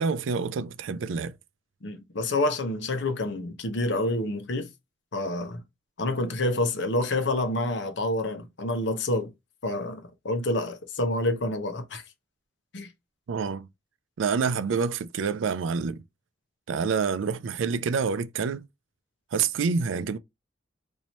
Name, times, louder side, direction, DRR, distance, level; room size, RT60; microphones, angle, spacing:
voice 1, 0.0-1.3 13.3-13.7 14.2-16.0 16.7-18.7 19.3-20.2, right 5 dB, 80° right, 0.4 m, -27 dB
voice 2, 1.8-4.7 5.1-5.6 6.0-9.3 9.6-12.0 12.7-12.9, left 1 dB, 65° left, 0.8 m, -28 dB
3.0 x 2.7 x 4.1 m
head